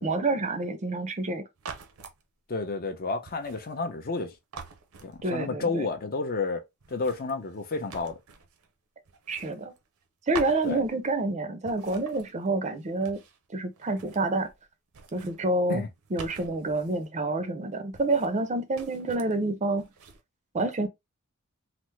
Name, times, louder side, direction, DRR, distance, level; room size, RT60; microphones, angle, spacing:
voice 1, 0.0-1.5 5.2-5.9 9.3-9.7 10.3-13.2 13.5-14.5 15.1-15.8 16.1-19.9 20.5-20.9, right 2 dB, 30° right, 0.5 m, -28 dB
sound 1, 1.6-2.2 3.3-4.2 4.5-5.6 6.8-8.7 9.1-10.1 10.3-11.3 11.6-13.5 13.7-14.6 14.9-17.1 17.9-18.5 18.7-19.4 19.8-20.2, right 5 dB, 75° right, 0.6 m, -46 dB
voice 2, 2.5-4.3 5.0-8.2 10.6-10.8 15.7-15.9, left 3 dB, 45° left, 0.6 m, -31 dB
3.3 x 2.0 x 3.1 m
head